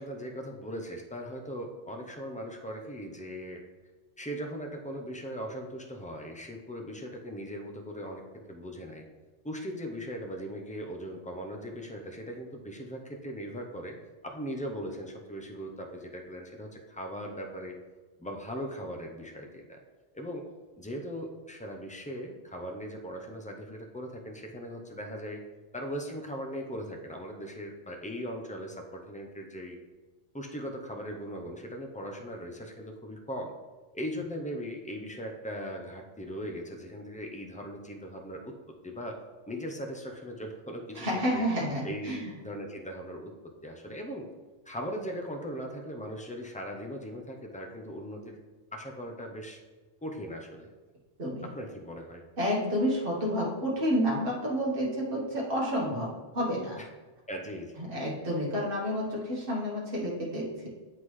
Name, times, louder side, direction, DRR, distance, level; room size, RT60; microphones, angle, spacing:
voice 1, 0.0-3.6 4.2-8.2 8.5-9.0 9.4-14.0 14.2-17.8 18.2-19.8 20.1-20.5 20.8-25.4 25.7-29.8 30.3-33.5 33.9-38.5 38.8-39.2 39.5-41.1 41.3-41.5 41.8-43.3 43.6-44.3 44.7-48.4 48.7-49.6 50.0-50.7 51.4-52.2 56.8-56.9 57.3-57.7, equal, 10° left, 2 dB, 0.4 m, -39 dB
voice 2, 40.9-42.3 51.2-51.5 52.4-56.8 57.8-60.7, equal, 50° right, -5 dB, 1.6 m, -30 dB
10.5 x 3.8 x 3.2 m, 1.3 s
omnidirectional pair, 1.2 m